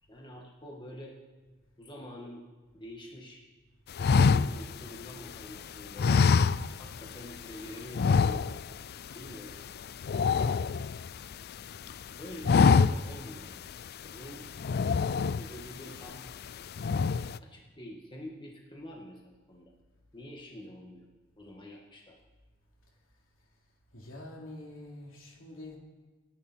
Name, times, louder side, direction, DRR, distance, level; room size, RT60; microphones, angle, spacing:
voice 1, 0.0-1.1 1.8-2.4 2.7-3.4 4.1-6.3 6.8-8.5 9.1-9.6 12.1-14.5 15.2-16.2 17.4-19.7 20.1-21.1 21.4-22.2, left 1 dB, 25° left, -1 dB, 2.0 m, -46 dB
sound 1, 4.0-5.5 6.0-7.1 7.3-7.5 7.9-8.8 9.1-9.3 9.6-11.3 11.8-12.0 12.3-13.3 13.7-13.8 14.6-15.7 16.2-16.5 16.8-17.4, left 5 dB, 50° left, 0.4 m, -25 dB
voice 2, 23.9-25.8, left 1 dB, 70° left, -1 dB, 3.6 m, -45 dB
27.0 x 11.0 x 4.6 m, 1.4 s
head